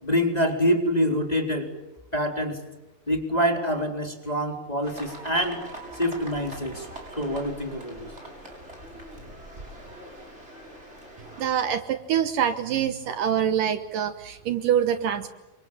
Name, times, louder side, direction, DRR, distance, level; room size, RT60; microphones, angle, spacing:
voice 1, 0.0-1.7 2.1-2.6 3.1-5.6 5.9-6.9 7.2-8.1, equal, 10° left, 4 dB, 3.8 m, -25 dB
sound 1, 4.8-11.5, right 1 dB, 15° right, 7.0 m, -42 dB
voice 2, 11.4-15.3, right 9 dB, 70° right, 10 dB, 2.6 m, -25 dB
29.5 x 26.0 x 7.3 m, 1.0 s
omnidirectional pair, 4.2 m